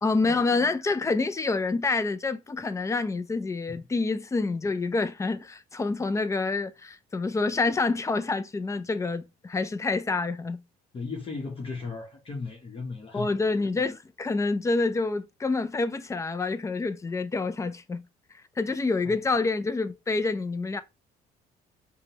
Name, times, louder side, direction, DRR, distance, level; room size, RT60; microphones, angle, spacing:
voice 1, 0.0-10.6 13.1-18.0 18.6-20.8, left 3 dB, 20° left, 0.4 m, -27 dB
voice 2, 10.9-13.3 19.0-19.2, left 4 dB, 35° left, 0.9 m, -36 dB
5.0 x 2.2 x 2.9 m
cardioid pair, 110°, 17 cm